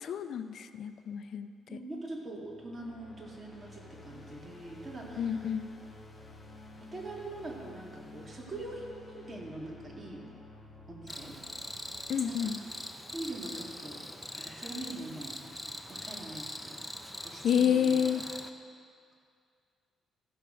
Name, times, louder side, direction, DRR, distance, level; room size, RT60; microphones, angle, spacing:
voice 1, 0.0-1.8 5.2-5.7 12.1-12.6 17.4-18.2, left 8 dB, 65° left, 9 dB, 0.5 m, -29 dB
voice 2, 1.7-5.5 6.8-10.2 10.9-11.4 12.3-12.5 13.1-14.1 14.4-15.4 15.9-16.8 17.2-18.2, right 2 dB, 30° right, -1 dB, 2.1 m, -43 dB
sound 1, 2.2-13.3, left 2 dB, 25° left, 1.4 m, -52 dB
Cricket, 11.1-18.5, left 1 dB, 5° left, 0.7 m, -42 dB
14.5 x 6.2 x 5.1 m, 2.3 s
cardioid pair, 90°, 0 cm